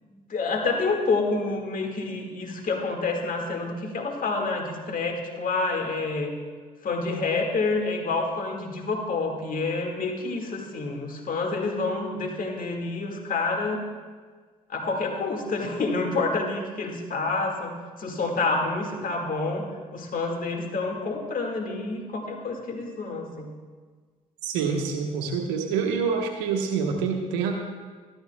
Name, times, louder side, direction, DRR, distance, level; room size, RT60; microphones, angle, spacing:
voice 1, 0.1-6.3 6.8-13.9 14.7-19.7 19.9-23.5, left 3 dB, 55° left, 2 dB, 1.9 m, -28 dB
voice 2, 24.4-27.5, right 5 dB, 90° right, 3 dB, 1.1 m, -26 dB
13.0 x 12.0 x 2.3 m, 1.5 s
hypercardioid pair, 55°, 17 cm